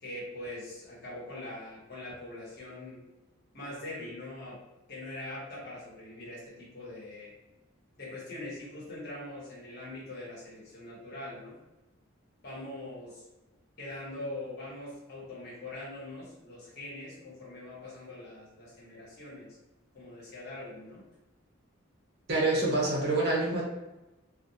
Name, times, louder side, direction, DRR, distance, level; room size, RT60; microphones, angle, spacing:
voice 1, 0.0-3.0 3.5-4.6 4.9-7.3 8.0-11.5 12.4-13.2 13.8-19.6 19.9-21.0, left 1 dB, 55° left, -7 dB, 1.1 m, -42 dB
voice 2, 22.3-23.6, right 2 dB, 55° right, -4 dB, 0.8 m, -26 dB
2.4 x 2.2 x 2.7 m, 1.0 s
head